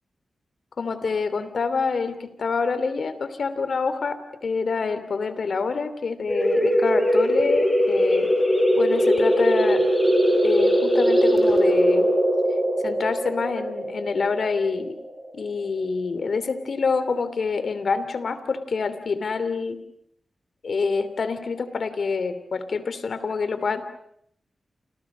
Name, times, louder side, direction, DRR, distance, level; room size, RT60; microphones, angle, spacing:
voice 1, 0.8-8.3 8.8-9.8 10.4-12.1 12.8-14.9 15.3-19.8 20.6-23.9, left 4 dB, 65° left, 12 dB, 3.0 m, -26 dB
sound 1, 6.3-15.6, equal, 15° left, 6.7 m, -20 dB
29.5 x 28.5 x 6.3 m, 0.72 s
cardioid pair, 75°, 0 cm